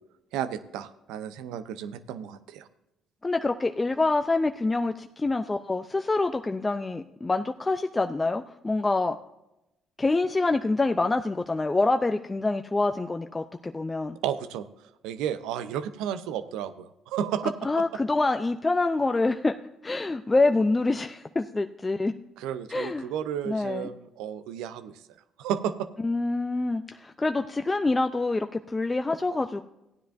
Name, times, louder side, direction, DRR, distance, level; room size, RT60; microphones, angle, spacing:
voice 1, 0.3-2.7 14.2-14.7 15.0-17.5 22.4-25.0 25.4-25.9, right 9 dB, 80° right, 13 dB, 0.6 m, -32 dB
voice 2, 3.2-9.2 10.0-14.2 17.6-19.6 19.8-22.1 22.7-23.1 23.5-23.9 26.0-29.6, left 3 dB, 25° left, 7 dB, 0.5 m, -26 dB
15.0 x 10.0 x 2.6 m, 0.90 s
hypercardioid pair, 55°, 0 cm